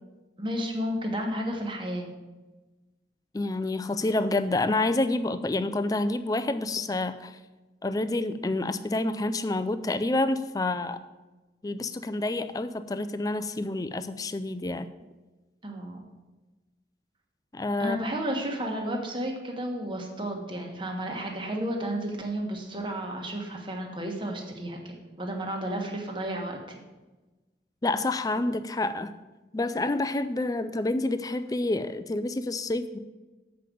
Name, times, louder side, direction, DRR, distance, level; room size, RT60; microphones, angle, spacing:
voice 1, 0.4-2.1 15.6-16.0 17.8-26.8, right 1 dB, 30° right, 1 dB, 1.3 m, -32 dB
voice 2, 3.3-7.4 7.8-11.0 11.6-14.9 17.5-18.0 27.8-29.1 29.5-33.0, left 2 dB, 20° left, 11 dB, 0.4 m, -28 dB
7.6 x 5.3 x 7.5 m, 1.2 s
head